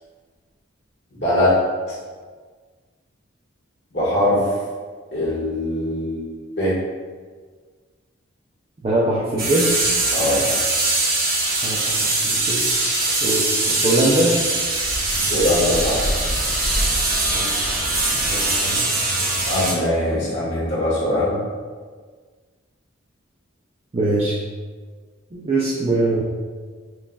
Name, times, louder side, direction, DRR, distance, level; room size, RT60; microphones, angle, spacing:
voice 1, 1.1-1.6 3.9-4.5 5.1-6.3 6.6-6.8 10.1-10.4 15.2-16.1 19.3-21.4, left 1 dB, 55° left, -10 dB, 1.5 m, -21 dB
voice 2, 8.8-9.7 11.6-12.7 13.2-14.4 17.3-17.5 18.2-19.0 23.9-24.4 25.3-26.2, right 2 dB, 30° right, -6 dB, 0.4 m, -22 dB
sound 1, 9.4-19.7, right 2 dB, 45° right, 0.9 m, -22 dB
5.5 x 2.3 x 2.3 m, 1.5 s
head